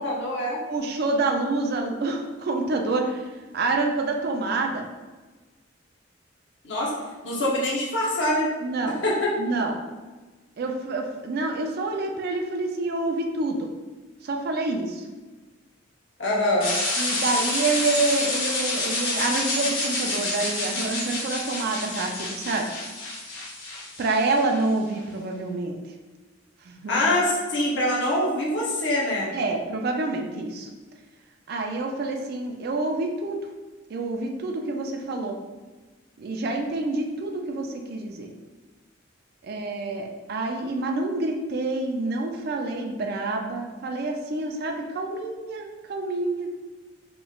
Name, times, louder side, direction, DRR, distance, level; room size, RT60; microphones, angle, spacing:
voice 1, 0.0-0.6 6.6-7.0 7.2-8.5 9.0-9.3 16.2-16.7 26.9-29.3, left 1 dB, 60° left, -4 dB, 0.8 m, -24 dB
voice 2, 0.7-4.9 8.6-9.0 9.4-9.8 10.6-13.7 14.2-15.0 17.0-22.7 24.0-25.8 26.6-27.1 29.3-30.7 31.5-33.4 33.9-35.4 36.2-38.3 39.4-46.6, right 3 dB, 50° right, 3 dB, 0.3 m, -27 dB
sound 1, 16.6-24.6, left 2 dB, 85° left, 1.0 m, -28 dB
3.2 x 2.9 x 2.3 m, 1.3 s
head